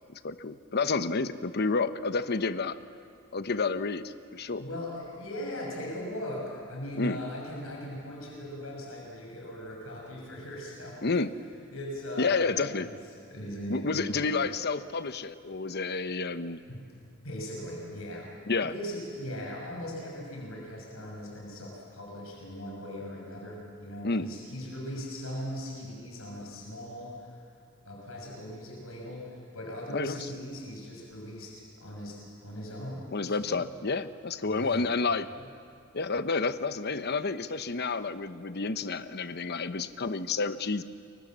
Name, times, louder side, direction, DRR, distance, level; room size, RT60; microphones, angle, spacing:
voice 1, 0.1-2.8 3.3-4.6 7.0-7.2 11.0-11.3 12.2-12.9 13.7-16.6 18.5-18.7 24.0-24.3 29.9-30.2 33.1-35.3 35.9-40.8, left 4 dB, 50° left, 12 dB, 1.0 m, -30 dB
voice 2, 4.6-11.1 11.7-13.0 13.3-14.5 16.7-16.8 17.2-18.3 18.7-27.3 27.9-33.7 34.4-34.9, equal, 80° left, -2 dB, 6.4 m, -39 dB
29.5 x 23.5 x 7.5 m, 2.4 s
head